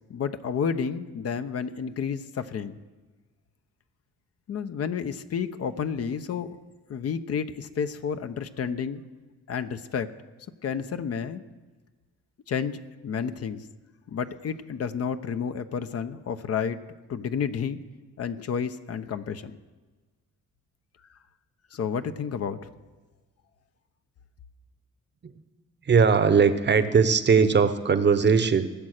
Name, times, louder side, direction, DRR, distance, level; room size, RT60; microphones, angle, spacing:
voice 1, 0.1-2.8 4.5-6.5 6.9-9.0 9.5-10.1 10.6-11.4 12.5-13.6 14.1-16.8 17.1-17.8 18.2-19.6 21.7-22.6, left 7 dB, 55° left, 9 dB, 0.9 m, -30 dB
voice 2, 25.8-28.7, right 5 dB, 35° right, 11 dB, 0.9 m, -20 dB
18.5 x 7.5 x 6.6 m, 1.3 s
cardioid pair, 90°, 30 cm